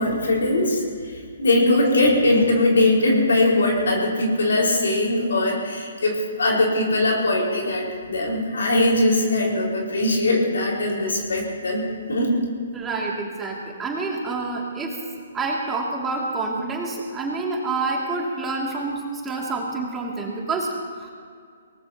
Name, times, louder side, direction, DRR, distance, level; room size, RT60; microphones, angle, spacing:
voice 1, 0.0-12.4, left 2 dB, 85° left, -1 dB, 5.0 m, -21 dB
voice 2, 12.7-15.0 15.3-21.1, right 3 dB, 15° right, -3 dB, 2.5 m, -28 dB
22.5 x 19.0 x 2.9 m, 2.2 s
hypercardioid pair, 145°, 0 cm